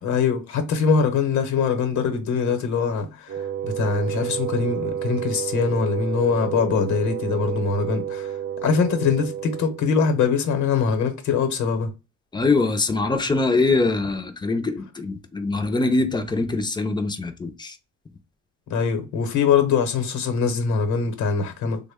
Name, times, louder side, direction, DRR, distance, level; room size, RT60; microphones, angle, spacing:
voice 1, 0.0-3.3 3.6-8.3 8.6-11.9 18.7-21.8, left 6 dB, 70° left, 0.9 m, -22 dB
Wind instrument woodwind instrument, 3.3-9.9, right 9 dB, 50° right, 0.6 m, -30 dB
voice 2, 12.3-17.8, left 3 dB, 15° left, 0.4 m, -23 dB
3.5 x 2.1 x 3.4 m
cardioid pair, 160°, 30 cm